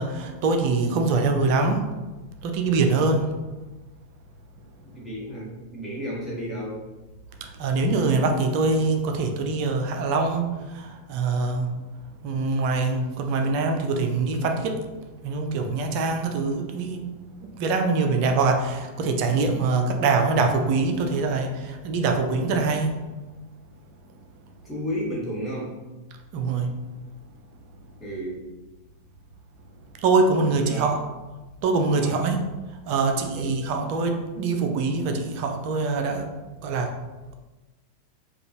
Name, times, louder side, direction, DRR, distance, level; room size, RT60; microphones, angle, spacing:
voice 1, 0.0-1.8 2.4-3.3 7.4-10.5 10.7-11.7 12.2-14.8 15.2-17.0 17.6-22.9 26.3-26.7 30.0-31.0 31.6-32.4 32.9-36.3 36.6-36.9, right 3 dB, 45° right, 4 dB, 0.5 m, -24 dB
voice 2, 4.8-6.8 24.6-25.8 28.0-28.4 30.6-30.9 32.0-32.3 33.3-33.5, equal, 10° left, -6 dB, 1.4 m, -32 dB
5.1 x 2.4 x 3.0 m, 1.2 s
figure-of-eight pair, 90°, 0 cm